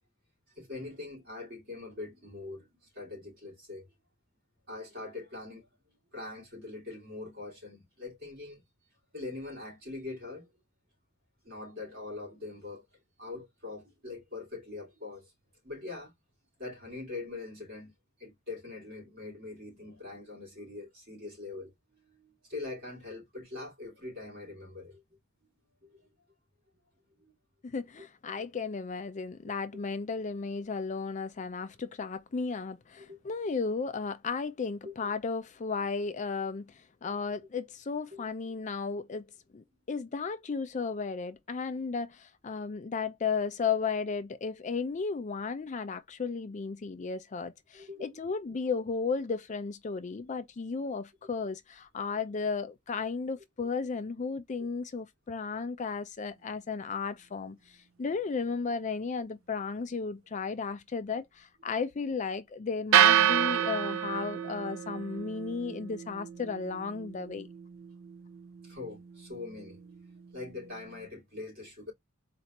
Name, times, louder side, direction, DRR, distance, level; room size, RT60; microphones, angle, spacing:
voice 1, 0.6-3.9 4.7-5.7 6.1-8.6 9.1-10.5 11.4-12.8 13.2-15.3 15.6-16.1 16.6-17.9 18.2-25.0 25.8-26.1 27.2-27.3 28.4-28.5 33.0-33.2 34.8-34.9 38.1-38.2 47.7-48.3 51.4-51.5 68.6-71.9, left 3 dB, 50° right, 2.5 m, -43 dB
voice 2, 27.6-39.3 39.5-67.5, left 5 dB, 40° left, 0.4 m, -34 dB
sound 1, 62.9-71.1, right 10 dB, 80° right, 0.4 m, -30 dB
4.3 x 2.4 x 2.9 m
head